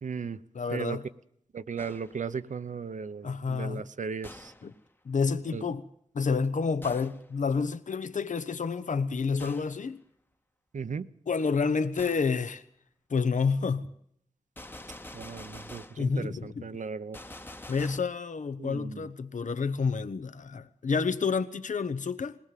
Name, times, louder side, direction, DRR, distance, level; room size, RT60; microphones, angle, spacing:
voice 1, 0.0-0.4 0.7-1.0 1.5-4.5 5.5-5.6 10.7-11.1 15.1-17.2 18.6-19.1, right 5 dB, 85° right, 0.8 m, -36 dB
voice 2, 0.5-1.0 3.2-3.9 4.6-4.7 5.1-5.8 6.1-10.0 11.3-12.6 13.1-13.9 16.0-16.7 17.7-22.4, left 5 dB, 85° left, 0.8 m, -29 dB
Gunshot gunfire, 1.8-2.3 4.2-4.8 6.8-7.3 9.4-9.8 12.0-12.3 14.6-16.1 17.1-18.0, left 1 dB, 15° left, 0.9 m, -46 dB
20.5 x 18.5 x 7.5 m
wide cardioid pair, 75°, 13 cm